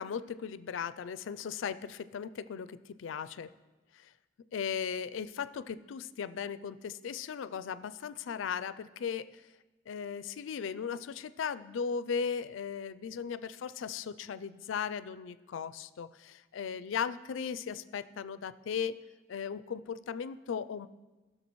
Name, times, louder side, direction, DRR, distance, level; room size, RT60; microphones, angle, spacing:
voice 1, 0.0-3.5 3.9-4.1 4.5-9.3 9.9-19.0 19.3-20.9, left 6 dB, 85° left, 14 dB, 0.4 m, -37 dB
15.5 x 6.4 x 3.1 m, 1.2 s
head